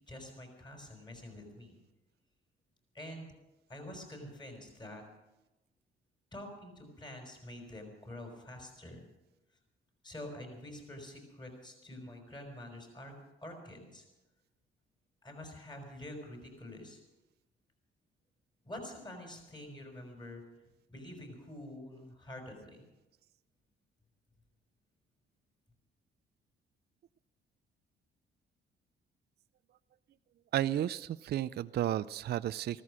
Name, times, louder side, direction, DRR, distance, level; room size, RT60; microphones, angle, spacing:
voice 1, 0.0-1.8 2.9-3.3 3.7-5.0 6.3-9.1 10.0-13.1 13.4-14.0 15.2-17.0 18.6-20.4 20.9-22.8, left 1 dB, 20° left, 3 dB, 5.2 m, -47 dB
voice 2, 30.5-32.8, right 12 dB, 55° right, 14 dB, 0.4 m, -32 dB
15.0 x 14.0 x 6.2 m, 1.0 s
cardioid pair, 90°, 20 cm